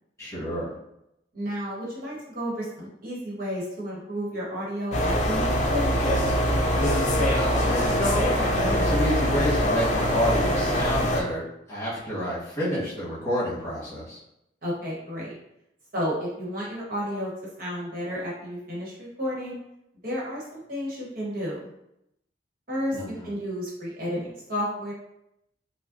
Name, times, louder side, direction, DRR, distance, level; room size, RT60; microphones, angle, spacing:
voice 1, 0.2-0.7 7.0-11.4 11.7-14.2 22.9-23.3, equal, 15° left, -9 dB, 1.4 m, -29 dB
voice 2, 1.3-6.0 14.6-15.3 15.9-17.3 17.6-19.5 20.0-21.7 22.7-24.9, equal, 55° right, -5 dB, 1.2 m, -32 dB
sound 1, 4.9-11.2, equal, 40° left, 0.5 m, -23 dB
5.4 x 2.1 x 2.5 m, 0.83 s
head